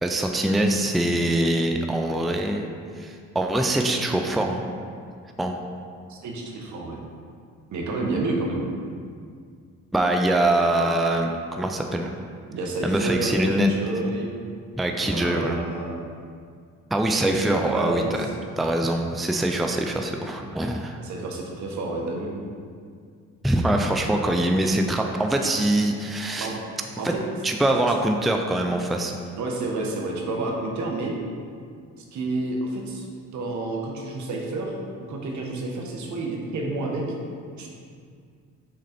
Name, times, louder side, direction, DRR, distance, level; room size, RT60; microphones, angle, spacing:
voice 1, 0.0-2.6 3.0-4.6 5.4-5.6 9.9-12.1 12.8-13.7 14.8-15.6 16.9-18.3 18.6-21.0 23.4-26.5 27.0-27.1 27.4-29.2, right 1 dB, ahead, 3 dB, 0.4 m, -23 dB
voice 2, 6.1-7.0 7.7-8.7 12.5-14.3 15.0-16.0 17.5-18.3 21.0-22.4 26.4-26.6 27.0-27.2 29.4-31.2 32.1-33.1 33.3-34.8 35.1-37.0 37.5-37.7, right 2 dB, 70° right, 0 dB, 1.1 m, -29 dB
6.3 x 3.9 x 4.3 m, 2.1 s
cardioid pair, 90°, 30 cm